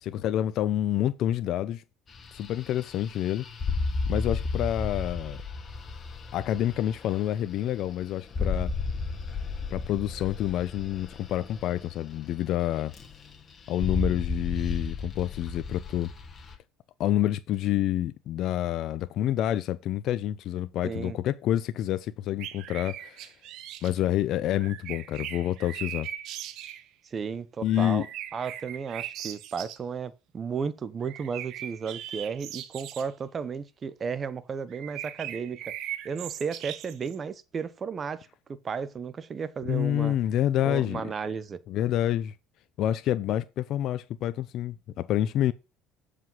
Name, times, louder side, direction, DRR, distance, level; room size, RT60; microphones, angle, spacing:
voice 1, 0.0-1.8 2.3-3.5 4.1-5.4 6.3-8.7 9.7-12.9 13.7-16.1 17.0-23.3 23.8-26.1 27.6-28.1 39.7-41.0 41.7-42.3 42.8-45.5, left 12 dB, 60° left, 0.5 m, -28 dB
sound 1, 2.1-12.6 12.9-13.4 13.7-16.5, left 4 dB, 30° left, 1.7 m, -33 dB
voice 2, 20.8-21.2 27.0-28.0 28.3-35.7 36.0-40.2 40.6-41.6, right 6 dB, 30° right, 0.7 m, -34 dB
sound 2, 22.4-23.9 24.5-26.9 27.7-29.8 31.0-33.1 34.7-37.2, right 11 dB, 65° right, 0.9 m, -39 dB
7.6 x 4.9 x 5.5 m
supercardioid pair, 105°, 0 cm